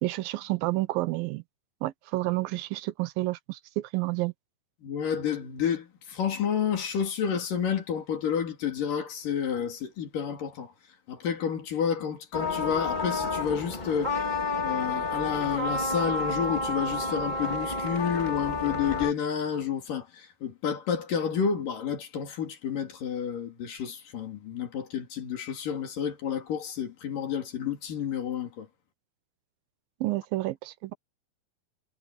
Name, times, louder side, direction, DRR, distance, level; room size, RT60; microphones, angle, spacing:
voice 1, 0.0-1.4 1.8-4.3 30.0-30.9, right 19 dB, 85° right, 2.6 m, -30 dB
voice 2, 4.8-10.7 11.1-14.2 14.6-28.7, left 7 dB, 70° left, 4.5 m, -30 dB
sound 1, 12.3-19.1, left 3 dB, 15° left, 2.1 m, -30 dB
omnidirectional pair, 4.1 m